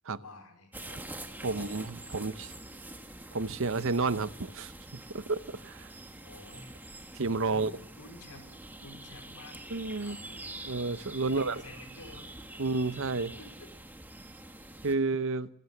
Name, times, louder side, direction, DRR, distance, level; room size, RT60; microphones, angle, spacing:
voice 1, 0.1-1.0 1.4-2.6 6.2-6.8 7.5-9.6 10.0-10.5 11.2-12.3 12.9-13.7, left 2 dB, 90° left, 5 dB, 4.7 m, -51 dB
sound 1, 0.7-14.9, right 1 dB, 10° right, 1.4 m, -46 dB
voice 2, 1.4-2.5 3.3-5.9 7.1-7.7 9.7-10.2 10.7-11.6 12.6-13.3 14.8-15.5, right 3 dB, 60° right, 15 dB, 0.8 m, -31 dB
25.0 x 14.5 x 7.2 m, 0.78 s
head